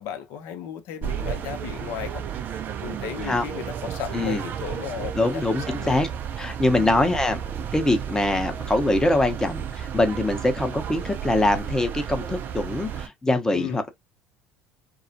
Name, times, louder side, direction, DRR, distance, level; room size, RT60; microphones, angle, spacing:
voice 1, 0.0-2.2 2.8-6.0 6.8-7.0 13.5-13.8, left 9 dB, 60° left, 0.6 m, -35 dB
sound 1, 1.0-13.1, right 9 dB, 45° right, 0.4 m, -33 dB
voice 2, 5.1-6.1 6.4-7.4 7.7-13.9, left 2 dB, 15° left, 0.7 m, -23 dB
2.3 x 2.0 x 2.6 m
hypercardioid pair, 65°, 5 cm